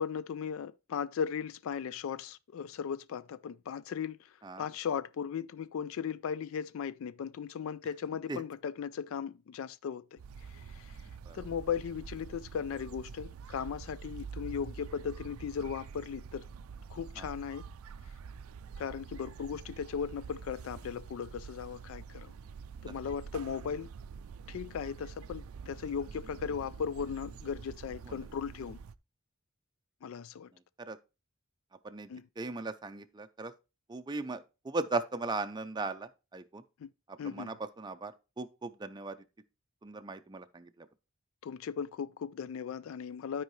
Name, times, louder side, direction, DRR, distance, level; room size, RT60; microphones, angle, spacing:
voice 1, 0.0-10.2 10.5-11.1 11.3-16.4 16.9-17.7 18.8-22.3 22.8-23.9 24.5-28.8 30.0-30.5 32.1-32.3 36.8-36.9 37.2-37.5 41.4-43.4, left 7 dB, 65° left, 0.3 m, -37 dB
sound 1, 10.2-28.9, right 6 dB, 80° right, 0.4 m, -46 dB
voice 2, 30.5-31.0 31.8-32.1 32.4-33.5 33.9-36.6 37.1-39.2 39.8-40.9, right 3 dB, 20° right, 0.5 m, -38 dB
12.5 x 4.6 x 3.1 m
head